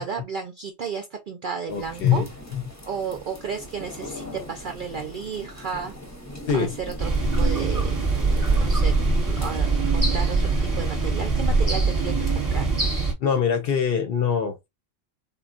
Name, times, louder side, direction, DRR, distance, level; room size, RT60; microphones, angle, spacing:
voice 1, 0.0-2.2 2.9-5.9 6.5-7.1 7.4-8.9 9.2-12.7, right 6 dB, 65° right, 0.5 m, -33 dB
voice 2, 1.7-2.3 6.5-6.7 13.2-14.7, left 7 dB, 55° left, 0.7 m, -23 dB
sound 1, 1.7-9.6, equal, 15° left, 0.7 m, -41 dB
sound 2, 7.0-13.1, right 3 dB, 20° right, 0.8 m, -22 dB
3.8 x 2.1 x 2.4 m
omnidirectional pair, 1.3 m